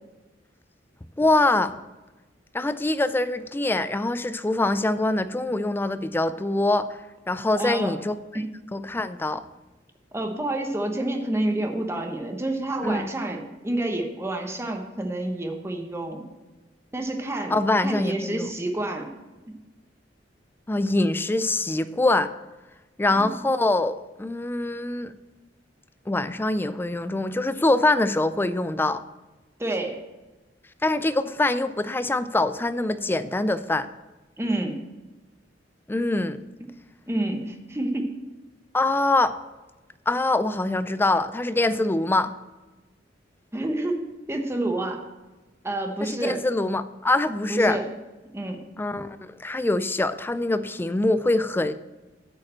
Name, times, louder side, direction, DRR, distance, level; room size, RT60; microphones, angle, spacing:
voice 1, 1.2-1.7 2.5-6.9 7.3-8.1 8.7-9.4 12.8-13.1 17.5-18.5 20.7-22.3 23.0-25.1 26.1-29.0 30.8-33.9 35.9-36.4 38.7-39.3 40.1-42.3 46.0-47.8 48.8-51.7, left 2 dB, 10° left, 13 dB, 0.3 m, -24 dB
voice 2, 7.6-8.0 8.3-8.5 10.1-16.3 16.9-17.6 17.8-19.1 23.2-23.4 29.6-30.0 34.4-34.8 37.1-38.1 43.5-45.1 45.6-46.4 47.5-47.9 48.3-48.6, right 1 dB, 15° right, 3 dB, 1.0 m, -28 dB
8.7 x 4.8 x 7.4 m, 1.1 s
head